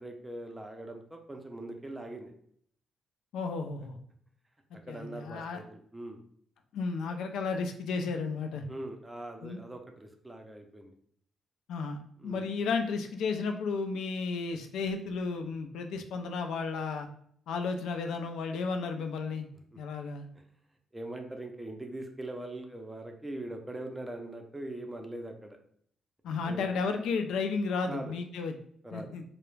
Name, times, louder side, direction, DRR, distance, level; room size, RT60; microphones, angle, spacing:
voice 1, 0.0-2.3 4.9-6.2 8.7-10.9 12.2-12.5 19.7-19.8 20.9-25.6 26.4-26.6 27.8-28.1 28.8-29.1, right 1 dB, 10° right, 4 dB, 0.5 m, -41 dB
voice 2, 3.3-4.0 4.7-5.6 6.7-8.6 9.4-9.6 11.7-17.1 17.5-19.5 19.8-20.3 26.2-28.6 28.9-29.2, left 4 dB, 85° left, 5 dB, 0.3 m, -33 dB
2.3 x 2.0 x 3.1 m, 0.64 s
cardioid pair, 100°, 0 cm